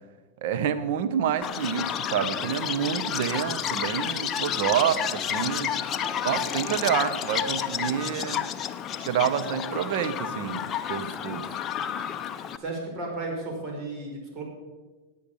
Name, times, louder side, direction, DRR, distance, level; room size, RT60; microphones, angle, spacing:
voice 1, 0.4-5.7 6.2-8.5 9.0-11.5, right 9 dB, 65° right, 12 dB, 1.2 m, -28 dB
Chirp tweet, 1.4-12.6, left 9 dB, 25° left, 0.8 m, -31 dB
voice 2, 12.6-14.4, right 2 dB, 35° right, 0 dB, 5.7 m, -34 dB
17.5 x 9.2 x 7.1 m, 1.3 s
supercardioid pair, 135°, 0 cm